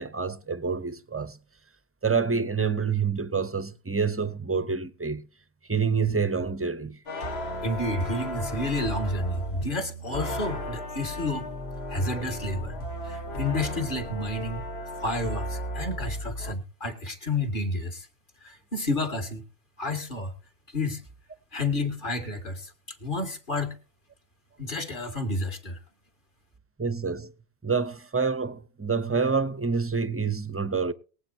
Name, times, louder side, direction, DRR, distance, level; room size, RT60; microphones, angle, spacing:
voice 1, 0.0-1.4 2.0-5.3 5.7-7.0 26.8-27.3 27.6-30.9, right 5 dB, 15° right, 0.5 m, -27 dB
sound 1, 7.1-16.5, equal, 70° left, 1.6 m, -35 dB
voice 2, 7.6-11.5 11.9-12.8 13.0-14.7 15.0-18.1 18.4-19.4 19.8-20.3 20.7-21.0 21.5-23.8 24.6-25.8, left 2 dB, 50° left, 2.3 m, -30 dB
22.5 x 8.6 x 2.7 m
omnidirectional pair, 1.1 m